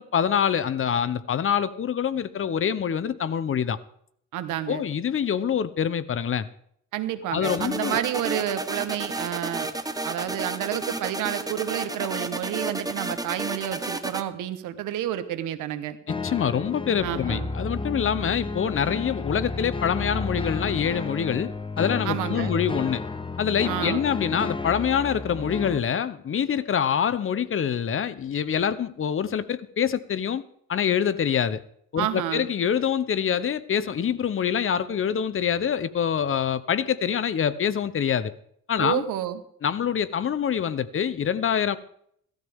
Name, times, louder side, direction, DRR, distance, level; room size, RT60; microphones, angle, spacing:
voice 1, 0.0-3.8 4.7-6.5 7.3-8.0 16.2-23.0 23.4-30.4 30.7-31.6 31.9-38.3 38.7-39.0 39.6-41.8, left 8 dB, 45° left, 15 dB, 0.8 m, -25 dB
voice 2, 4.3-4.8 6.9-9.7 10.0-16.0 17.0-17.5 22.0-22.6 23.6-24.0 32.0-32.5 38.8-39.4, right 11 dB, 90° right, 11 dB, 1.3 m, -30 dB
sound 1, 7.4-14.2, right 2 dB, 10° right, 1.0 m, -32 dB
sound 2, 16.1-25.8, left 3 dB, 15° left, 0.9 m, -32 dB
17.0 x 13.0 x 3.6 m, 0.67 s
cardioid pair, 90°, 30 cm